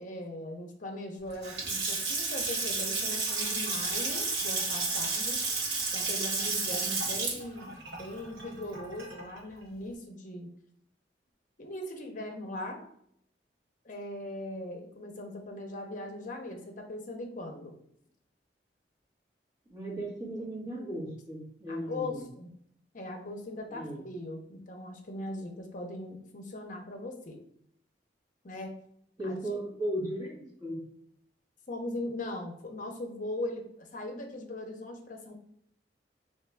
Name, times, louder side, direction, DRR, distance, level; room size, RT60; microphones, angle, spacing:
voice 1, 0.0-5.4 5.9-10.5 11.6-12.8 13.8-17.7 21.7-22.5 22.9-27.4 28.4-28.8 29.2-29.6 31.7-35.4, left 1 dB, 50° left, 3 dB, 0.7 m, -39 dB
Water tap faucet / Sink (filling or washing) / Splash splatter, 1.3-9.4, right 3 dB, 80° right, 1.3 m, -32 dB
voice 2, 19.7-22.2 23.7-24.0 29.2-30.8, right 1 dB, 25° right, -5 dB, 1.5 m, -36 dB
3.5 x 3.0 x 3.4 m, 0.70 s
head